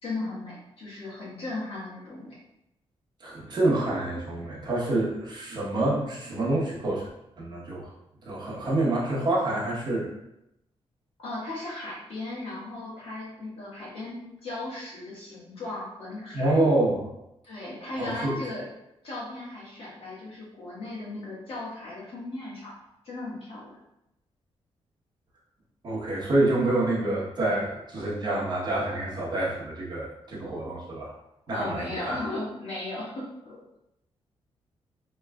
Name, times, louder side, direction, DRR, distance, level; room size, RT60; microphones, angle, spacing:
voice 1, 0.0-2.3 11.2-16.6 17.4-18.6 19.0-22.7 23.0-23.8 31.5-33.6, left 2 dB, 65° left, -7 dB, 1.4 m, -36 dB
voice 2, 3.2-7.1 7.4-7.9 8.2-10.1 16.3-17.1 18.0-18.4 25.8-31.1 31.5-32.2, right 2 dB, 45° right, -5 dB, 0.9 m, -27 dB
3.4 x 3.1 x 2.2 m, 0.86 s
wide cardioid pair, 155°, 11 cm